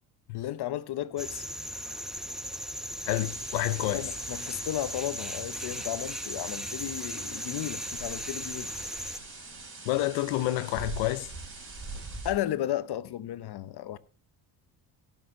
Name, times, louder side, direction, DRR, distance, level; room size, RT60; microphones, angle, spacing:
voice 1, 0.3-1.4 3.9-8.7 12.2-14.0, left 12 dB, 55° left, 1.0 m, -34 dB
sound 1, 1.2-9.2, equal, ahead, 0.6 m, -37 dB
voice 2, 3.0-4.1 9.8-11.3, left 16 dB, 85° left, 0.8 m, -29 dB
sound 2, 3.1-12.3, right 3 dB, 25° right, 4.7 m, -44 dB
17.0 x 6.8 x 3.8 m
supercardioid pair, 75°, 46 cm